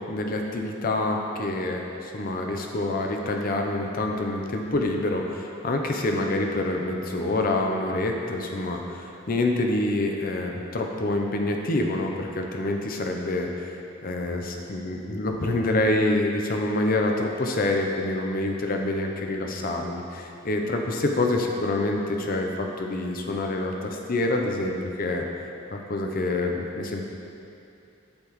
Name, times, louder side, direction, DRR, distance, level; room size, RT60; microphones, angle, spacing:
voice 1, 0.1-13.7 14.0-25.2 25.7-27.0, left 2 dB, 45° left, 2 dB, 0.6 m, -27 dB
8.6 x 5.9 x 3.1 m, 2.7 s
head